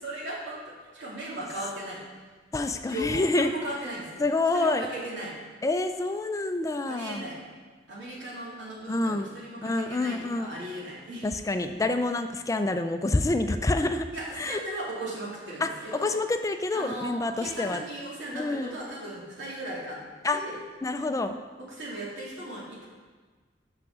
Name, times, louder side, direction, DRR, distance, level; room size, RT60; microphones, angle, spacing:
voice 1, 0.0-2.0 2.9-4.2 4.5-5.3 6.9-7.4 7.9-11.3 14.1-16.2 16.7-20.0 20.3-20.6 21.6-22.9, right 1 dB, 90° right, -6 dB, 2.6 m, -37 dB
voice 2, 2.5-3.5 4.2-4.9 5.6-7.3 8.9-9.3 9.6-10.5 11.2-14.1 14.4-14.6 15.6-17.8 18.3-18.7 20.2-20.4 20.8-21.4, left 2 dB, 20° left, 8 dB, 0.3 m, -27 dB
6.1 x 5.8 x 6.2 m, 1.4 s
head